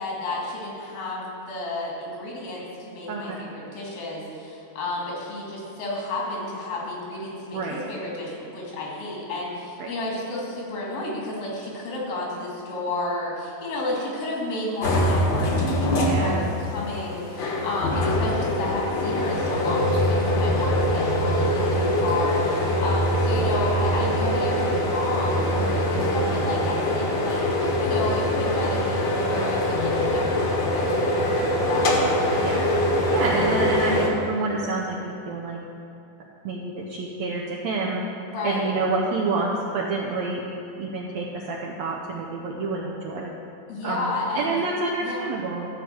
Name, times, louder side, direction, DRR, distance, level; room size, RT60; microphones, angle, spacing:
voice 1, 0.0-32.0 38.3-38.7 43.7-44.6 45.0-45.3, left 2 dB, 85° left, -4 dB, 4.1 m, -32 dB
voice 2, 3.1-3.4 7.5-7.8 9.8-9.9 16.0-16.5 25.7-25.8 32.4-32.6 33.1-35.6 36.4-38.0 38.4-40.5 40.8-43.3 43.8-45.7, right 3 dB, 75° right, -2 dB, 1.6 m, -28 dB
sound 1, 14.8-34.1, left 1 dB, 55° left, 1.4 m, -23 dB
13.0 x 4.9 x 7.8 m, 2.6 s
omnidirectional pair, 4.0 m